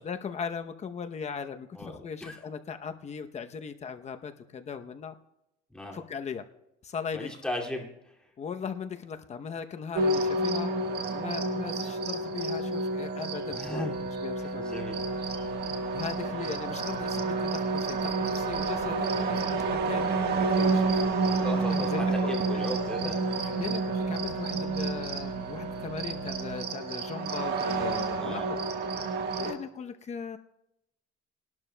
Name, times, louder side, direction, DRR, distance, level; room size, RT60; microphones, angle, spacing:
voice 1, 0.0-5.1 5.9-6.5 6.8-7.4 8.4-10.7 11.1-13.9 14.2-14.9 15.9-21.0 21.7-22.0 22.5-22.6 23.0-23.8 24.1-28.6 29.4-30.4, left 6 dB, 35° left, 8 dB, 0.8 m, -38 dB
voice 2, 1.7-2.4 5.7-6.0 7.1-7.9 13.5-14.1 14.5-15.0 21.4-23.2 28.2-28.5, left 1 dB, 5° left, -1 dB, 2.4 m, -36 dB
sound 1, 9.9-29.5, right 3 dB, 55° right, 1.4 m, -29 dB
sound 2, 14.9-26.6, right 3 dB, 70° right, 5.1 m, -45 dB
21.0 x 12.0 x 2.2 m, 0.85 s
cardioid pair, 120°, 20 cm